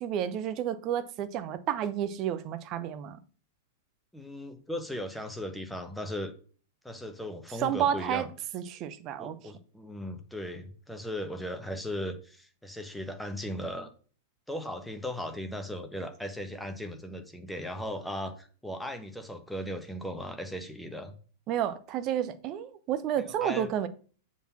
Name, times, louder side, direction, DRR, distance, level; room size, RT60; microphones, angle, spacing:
voice 1, 0.0-3.2 7.6-8.3 8.5-9.5 21.5-23.9, right 10 dB, 35° right, 0.7 m, -31 dB
voice 2, 4.1-6.3 6.8-8.3 9.2-13.9 14.5-21.1 23.2-23.7, left 1 dB, ahead, 1.2 m, -37 dB
6.9 x 4.1 x 5.8 m
figure-of-eight pair, 100°, 0 cm